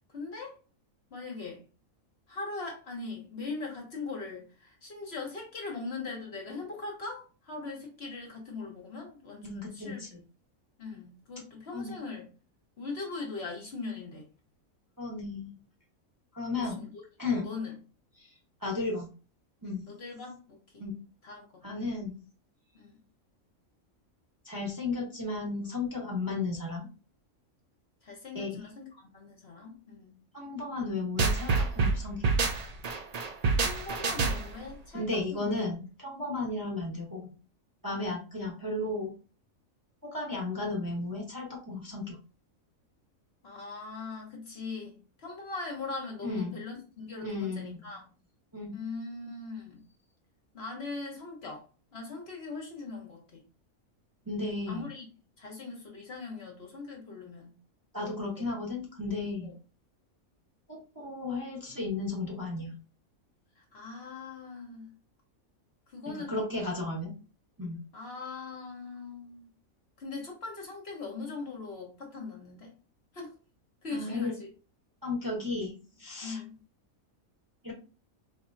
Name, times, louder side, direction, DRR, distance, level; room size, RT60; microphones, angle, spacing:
voice 1, 0.1-0.6 1.1-1.7 2.3-10.0 10.8-12.3 12.8-14.3 16.8-16.9 17.4-17.7 19.9-20.8 21.2-21.7 22.7-23.0 28.0-30.2 33.6-35.0 35.3-35.5 43.4-48.0 48.7-49.8 50.5-51.7 51.9-53.4 54.7-55.1 55.4-57.6 58.0-58.5 59.4-59.5 63.6-64.9 65.9-66.3 67.9-69.5 70.0-72.7 73.1-73.3 73.8-74.5 76.2-76.5, left 3 dB, 50° left, 1.1 m, -40 dB
voice 2, 9.4-10.2 11.7-12.0 15.0-15.5 16.3-16.8 17.2-17.5 18.2-18.3 18.6-19.1 19.6-19.9 20.8-21.0 21.6-22.2 24.4-26.9 28.3-28.7 30.3-32.4 34.9-37.3 37.8-39.1 40.0-42.2 46.2-46.6 47.2-47.8 48.5-48.7 54.3-54.9 57.9-59.5 60.7-62.7 66.1-67.1 67.6-67.8 73.9-74.3 75.0-76.4 77.6-77.7, left 3 dB, 15° right, 0.9 m, -34 dB
sound 1, 31.2-34.7, right 4 dB, 75° right, 0.3 m, -27 dB
4.3 x 2.9 x 2.5 m
omnidirectional pair, 1.5 m